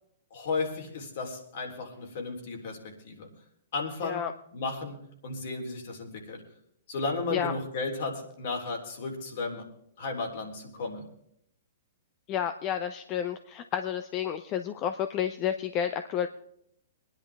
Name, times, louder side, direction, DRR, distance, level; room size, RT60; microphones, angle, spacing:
voice 1, 0.3-2.8 3.0-3.3 3.7-4.2 4.5-6.4 6.9-9.7 10.0-11.1, left 3 dB, 60° left, 1 dB, 3.4 m, -34 dB
voice 2, 4.0-4.3 7.3-7.5 12.3-16.3, left 9 dB, 35° left, 9 dB, 0.7 m, -30 dB
22.0 x 10.5 x 3.5 m, 0.73 s
hypercardioid pair, 125°, 0 cm